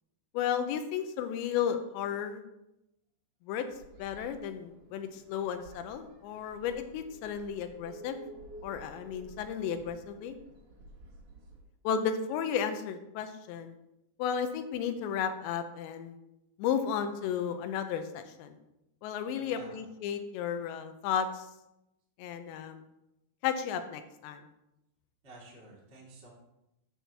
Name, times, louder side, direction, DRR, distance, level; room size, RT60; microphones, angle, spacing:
voice 1, 0.3-2.4 3.5-3.6 4.0-8.3 8.6-10.4 11.8-13.7 14.2-16.2 16.6-18.6 19.0-21.5 22.2-22.8 23.4-24.4, left 8 dB, 85° left, 8 dB, 3.0 m, -33 dB
sound 1, 3.7-11.6, right 1 dB, 75° right, 1.3 m, -52 dB
voice 2, 19.4-19.8 25.2-26.3, right 2 dB, 20° right, -6 dB, 2.2 m, -51 dB
10.0 x 4.4 x 6.9 m, 0.88 s
omnidirectional pair, 5.2 m